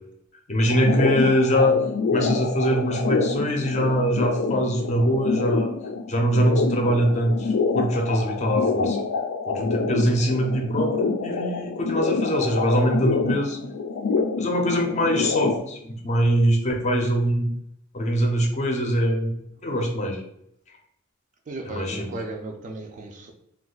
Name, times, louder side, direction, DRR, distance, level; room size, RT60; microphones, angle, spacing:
voice 1, 0.5-1.8 2.1-5.7 6.1-9.0 9.5-13.6 14.4-17.5 17.9-19.3 19.6-20.2 21.7-22.1, equal, 35° left, 0.5 m, -23 dB
sound 1, 0.7-15.6, left 4 dB, 90° left, 0.4 m, -26 dB
voice 2, 21.5-23.3, right 2 dB, 35° right, 0.4 m, -35 dB
2.5 x 2.3 x 3.7 m
head